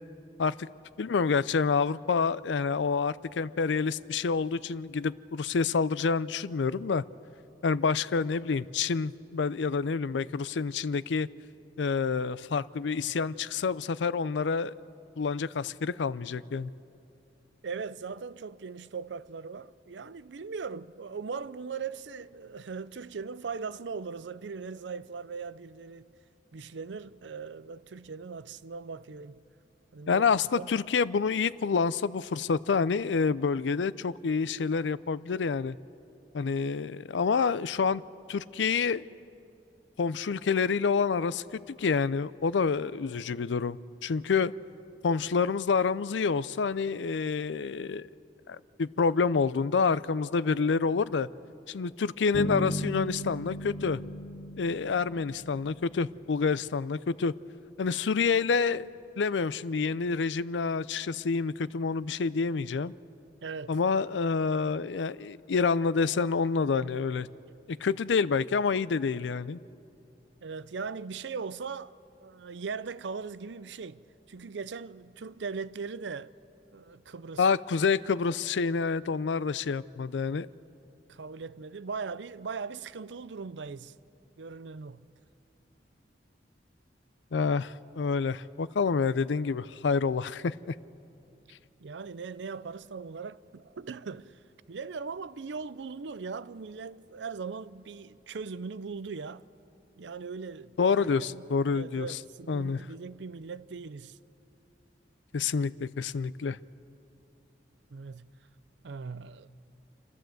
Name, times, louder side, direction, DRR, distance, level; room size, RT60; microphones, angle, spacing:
voice 1, 1.0-7.0 7.6-11.3 11.8-14.7 15.2-16.7 30.1-35.8 36.3-38.0 38.3-39.0 40.0-44.5 45.0-48.1 48.5-51.3 51.7-54.0 54.6-57.3 57.8-58.9 59.2-62.9 63.7-67.3 67.7-69.6 77.4-80.5 87.3-90.7 100.8-102.2 102.5-102.8 105.3-106.6, left 5 dB, 90° left, 0.5 m, -28 dB
voice 2, 17.6-26.1 26.5-29.4 29.9-30.2 30.6-30.7 63.4-63.8 70.4-71.9 72.2-74.0 74.3-76.3 76.7-77.5 81.1-83.9 84.4-85.0 91.8-94.4 94.7-99.4 100.0-101.4 101.7-104.2 107.9-108.3 108.8-109.5, right 5 dB, 80° right, 0.5 m, -39 dB
Bass guitar, 52.3-56.1, equal, 60° left, 1.4 m, -36 dB
29.5 x 12.5 x 7.8 m
head